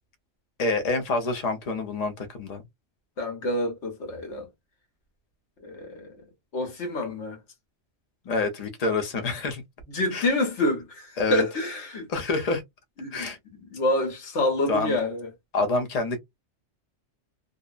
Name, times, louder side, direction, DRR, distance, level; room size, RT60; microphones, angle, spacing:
voice 1, 0.6-2.6 8.2-9.6 10.1-10.3 11.2-11.4 12.1-12.6 13.1-13.4 14.7-15.0 15.5-16.2, left 3 dB, 40° left, 0.7 m, -27 dB
voice 2, 3.2-4.5 5.6-6.2 6.5-7.4 9.9-12.1 13.0-15.3, left 1 dB, 75° left, 1.3 m, -28 dB
2.7 x 2.0 x 2.3 m
omnidirectional pair, 1.2 m